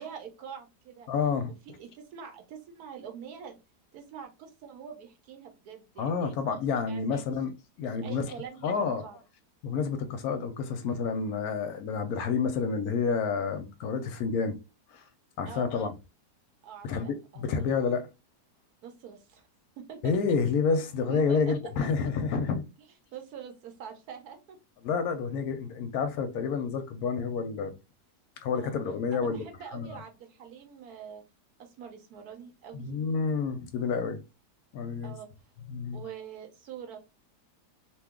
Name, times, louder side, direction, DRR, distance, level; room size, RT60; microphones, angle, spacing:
voice 1, 0.0-1.1 1.5-3.6 3.9-7.3 7.8-9.2 15.4-15.9 16.6-17.5 18.8-19.4 19.8-20.1 21.1-21.5 23.1-24.6 28.5-28.8 29.1-31.2 31.6-33.0 35.0-35.3 35.9-37.0, right 7 dB, 70° right, 1.1 m, -45 dB
voice 2, 1.1-1.5 6.0-8.3 8.6-9.1 9.6-14.6 14.9-15.0 15.4-15.9 16.8-18.1 20.0-22.6 24.8-27.7 28.4-29.4 29.7-29.9 32.7-34.2 34.7-35.1 35.7-36.0, left 5 dB, 70° left, 1.0 m, -29 dB
2.9 x 2.2 x 3.4 m
omnidirectional pair, 1.7 m